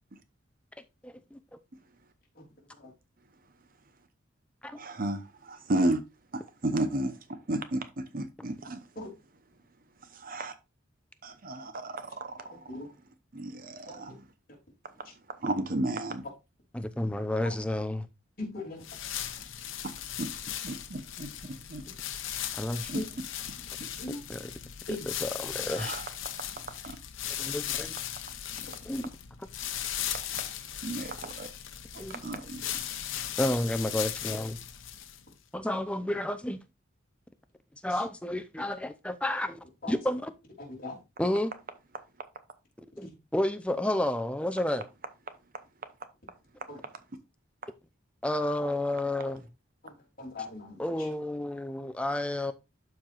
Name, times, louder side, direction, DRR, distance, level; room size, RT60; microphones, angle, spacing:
voice 1, 1.0-1.4 4.6-4.8 16.7-18.1 22.5-22.9 24.3-24.5 25.2-25.9 27.4-28.0 28.8-29.1 32.0-32.2 33.4-34.6 35.5-36.6 37.8-40.3 41.2-41.5 43.0-44.8 48.2-49.5 50.8-52.5, left 1 dB, 5° left, 0.6 m, -31 dB
voice 2, 4.8-6.0 6.3-7.1 7.5-8.8 10.1-10.5 11.2-12.7 13.3-14.2 15.4-16.2 19.8-19.9 20.2-20.3 20.6-21.8 22.9-23.0 25.8-26.0 26.8-27.0 30.4-30.5 30.8-31.5 31.9-32.8, right 1 dB, 45° right, 0.8 m, -33 dB
voice 3, 12.5-12.9 13.9-14.1 17.4-17.5 18.4-18.8 22.9-23.0 23.9-24.2 24.9-25.1 28.5-28.6 37.9-38.0 39.8-39.9 40.6-41.0 43.0-43.1 46.7-46.8 49.8-51.1, left 2 dB, 45° left, 3.1 m, -40 dB
sound 1, 18.8-35.3, left 10 dB, 75° left, 0.8 m, -37 dB
12.0 x 4.6 x 2.4 m
head